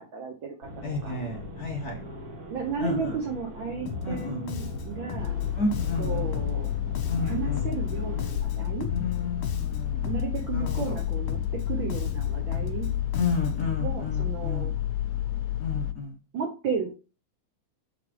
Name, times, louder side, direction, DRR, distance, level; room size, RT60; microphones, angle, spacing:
voice 1, 0.0-0.7 1.0-1.1 2.4-5.3 6.0-6.7 7.2-8.9 10.0-12.9 13.8-14.7 16.3-16.9, right 6 dB, 65° right, 2 dB, 1.2 m, -34 dB
sound 1, 0.6-8.4, left 1 dB, 30° right, 2.5 m, -41 dB
voice 2, 0.8-2.0 2.8-3.1 4.0-4.4 5.6-6.3 7.1-7.7 8.9-10.1 10.5-11.0 13.1-14.7 15.6-16.1, left 3 dB, 35° left, 0 dB, 1.8 m, -31 dB
Bass guitar, 3.9-13.7, left 6 dB, 60° left, 1.9 m, -37 dB
sound 2, 5.2-15.9, left 12 dB, 80° left, 1.7 m, -30 dB
7.1 x 4.1 x 4.6 m, 0.33 s
omnidirectional pair, 3.5 m